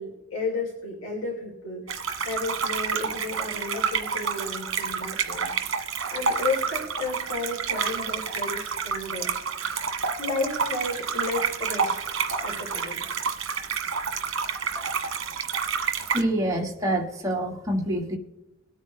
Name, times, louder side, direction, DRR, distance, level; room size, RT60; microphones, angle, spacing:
voice 1, 0.0-9.3 10.2-13.0, left 3 dB, 75° left, -4 dB, 3.0 m, -33 dB
sound 1, 1.9-16.2, right 6 dB, 65° right, 1.5 m, -29 dB
voice 2, 16.1-18.2, right 1 dB, 15° right, 0 dB, 1.8 m, -26 dB
22.5 x 8.8 x 3.1 m, 0.97 s
head